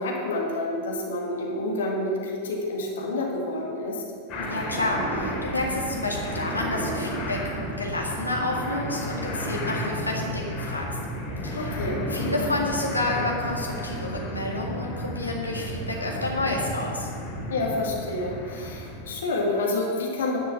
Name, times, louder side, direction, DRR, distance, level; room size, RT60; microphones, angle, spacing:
voice 1, 0.0-4.0 11.6-12.0 17.5-20.4, left 2 dB, 60° left, -2 dB, 2.0 m, -28 dB
sound 1, 4.3-19.1, equal, 35° left, 2.4 m, -32 dB
voice 2, 4.4-7.4 7.8-11.0 11.4-11.7 12.1-17.1, left 2 dB, 80° left, -1 dB, 1.9 m, -29 dB
10.5 x 6.0 x 7.3 m, 2.3 s
figure-of-eight pair, 90°, 0 cm